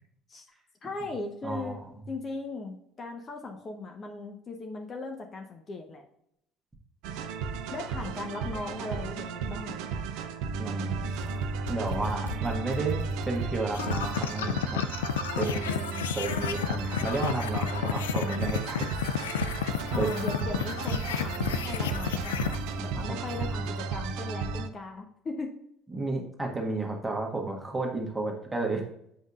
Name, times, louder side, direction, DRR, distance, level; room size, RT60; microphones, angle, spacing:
voice 1, 0.8-1.8 2.1-6.1 7.7-9.9 19.9-25.6, left 3 dB, 30° left, 4 dB, 0.8 m, -38 dB
voice 2, 1.4-1.9 10.6-11.2 11.7-13.0 13.2-14.8 15.4-18.9 19.9-20.6 22.9-23.2 25.9-28.8, right 3 dB, 15° right, 1 dB, 1.5 m, -32 dB
sound 1, 7.0-24.7, right 5 dB, 60° right, 0.5 m, -34 dB
sound 2, 10.8-10.9 11.1-15.7 16.1-23.7, equal, 85° right, 0.9 m, -40 dB
sound 3, 13.7-22.6, left 8 dB, 75° left, 0.3 m, -31 dB
8.0 x 5.4 x 2.4 m, 0.76 s
figure-of-eight pair, 60°, 0 cm